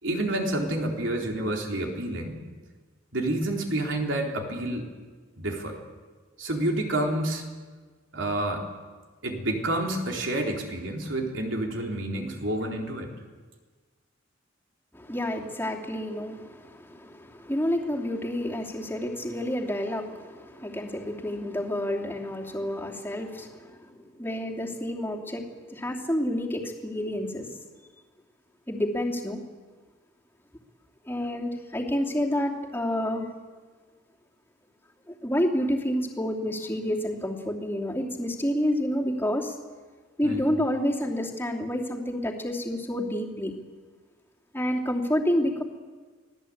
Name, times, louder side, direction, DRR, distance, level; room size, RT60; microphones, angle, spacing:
voice 1, 0.0-2.4 3.1-4.9 5.4-5.8 6.4-7.5 8.1-8.6 9.2-13.1 40.2-40.5, right 1 dB, 65° right, 1 dB, 3.9 m, -29 dB
voice 2, 14.9-27.5 28.7-29.4 31.0-33.3 35.1-39.6 40.2-43.6 44.5-45.6, left 1 dB, 10° left, -1 dB, 2.8 m, -29 dB
25.5 x 17.0 x 8.7 m, 1.4 s
head